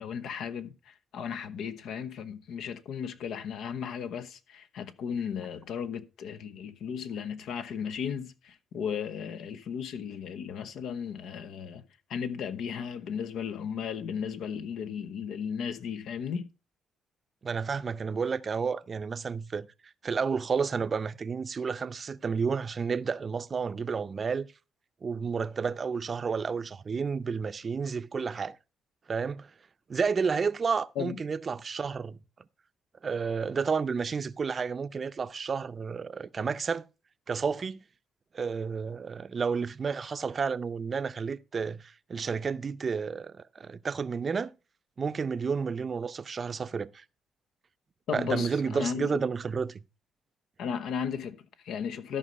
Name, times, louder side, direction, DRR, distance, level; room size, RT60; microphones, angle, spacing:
voice 1, 0.0-11.8 12.1-16.5 31.0-31.2 48.1-49.2 50.6-52.2, left 7 dB, 75° left, 0.9 m, -35 dB
voice 2, 17.4-19.7 20.0-24.5 25.0-28.6 29.1-29.5 29.9-32.2 33.0-36.8 37.3-37.8 38.3-44.5 45.0-47.0 48.1-49.8, right 5 dB, 40° right, 0.6 m, -31 dB
12.5 x 5.5 x 5.3 m
cardioid pair, 90°, 0 cm